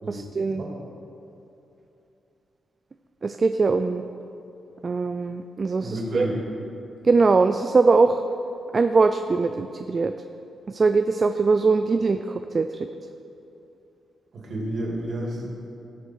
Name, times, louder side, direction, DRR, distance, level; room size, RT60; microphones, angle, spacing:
voice 1, 0.1-0.6 3.2-4.0 4.8-6.3 7.0-8.2 8.7-10.1 10.7-12.7, right 4 dB, 30° right, 8 dB, 0.3 m, -21 dB
voice 2, 5.8-6.4 14.3-15.5, right 1 dB, 50° right, -3 dB, 2.8 m, -30 dB
17.0 x 6.9 x 4.6 m, 2.9 s
wide cardioid pair, 155°, 0 cm